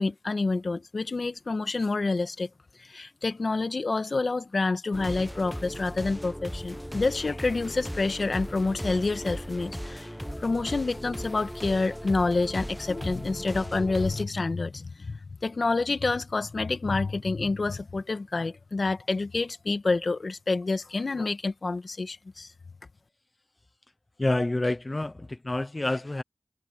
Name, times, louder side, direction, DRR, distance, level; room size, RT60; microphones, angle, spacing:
voice 1, 0.0-2.5 2.8-10.1 10.4-22.5, left 3 dB, 65° left, 1.7 m, -28 dB
sound 1, 4.9-14.2, equal, ahead, 0.8 m, -37 dB
voice 2, 24.2-26.2, left 2 dB, 35° left, 0.7 m, -28 dB
cardioid pair, 45°, 0 cm